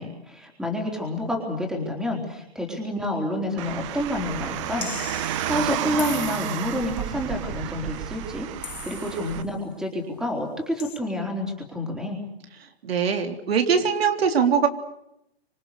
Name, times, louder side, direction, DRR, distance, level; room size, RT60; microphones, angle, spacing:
voice 1, 0.0-12.2, left 1 dB, ahead, 1 dB, 3.9 m, -29 dB
Car, 3.6-9.4, right 12 dB, 30° right, 1.2 m, -31 dB
sound 1, 4.8-6.9 8.6-9.5 10.8-11.0, left 8 dB, 90° left, 3.8 m, -39 dB
voice 2, 12.8-14.7, right 6 dB, 75° right, 6 dB, 3.6 m, -21 dB
30.0 x 26.0 x 6.8 m, 0.81 s
hypercardioid pair, 160°, 31 cm